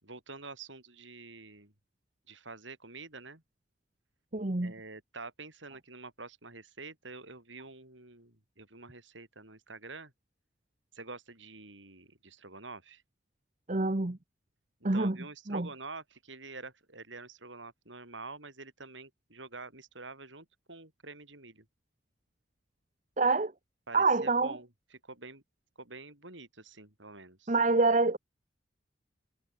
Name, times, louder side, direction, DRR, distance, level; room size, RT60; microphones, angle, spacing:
voice 1, 0.0-1.7 2.3-3.4 4.6-10.1 10.9-13.0 14.9-21.6 23.9-24.7 25.0-25.4 25.8-27.6, right 3 dB, 80° right, 7.7 m, -47 dB
voice 2, 4.3-4.7 13.7-14.2 14.8-15.2 15.5-15.7 23.2-23.5 23.9-24.6 27.5-28.2, right 3 dB, 40° right, 1.0 m, -26 dB
head